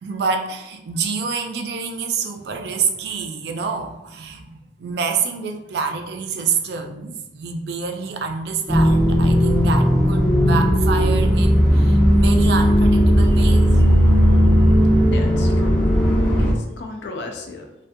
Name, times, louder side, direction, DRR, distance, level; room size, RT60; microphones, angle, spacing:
voice 1, 0.0-13.9, right 5 dB, 65° right, 5 dB, 0.3 m, -27 dB
sound 1, 8.7-16.5, equal, 5° left, 0.4 m, -16 dB
voice 2, 15.0-15.8 16.4-17.7, left 3 dB, 75° left, 3 dB, 0.4 m, -34 dB
2.5 x 2.2 x 2.5 m, 0.91 s
head